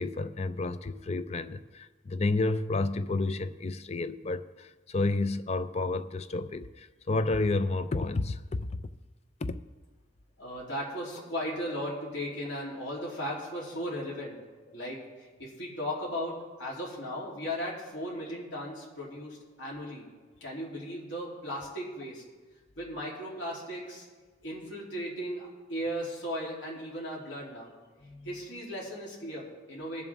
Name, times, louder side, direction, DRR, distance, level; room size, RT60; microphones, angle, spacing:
voice 1, 0.0-8.7 9.4-9.6 28.0-28.3, left 2 dB, 35° left, 0.4 m, -31 dB
voice 2, 10.4-14.4 14.7-20.0 20.4-22.2 22.8-24.0 24.4-27.7 28.2-30.0, equal, 90° left, 3.2 m, -36 dB
21.0 x 7.1 x 3.5 m
head